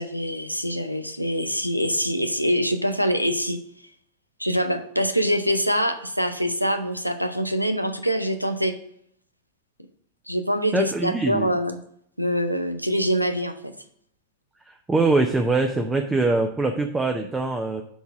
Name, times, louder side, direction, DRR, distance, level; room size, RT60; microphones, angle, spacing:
voice 1, 0.0-3.6 4.4-8.8 10.3-11.8 12.2-13.7, equal, 90° right, 9 dB, 0.7 m, -24 dB
voice 2, 10.7-11.5 14.7-17.8, right 3 dB, 10° right, 4 dB, 0.6 m, -23 dB
7.0 x 4.0 x 6.1 m, 0.67 s
figure-of-eight pair, 90°, 0 cm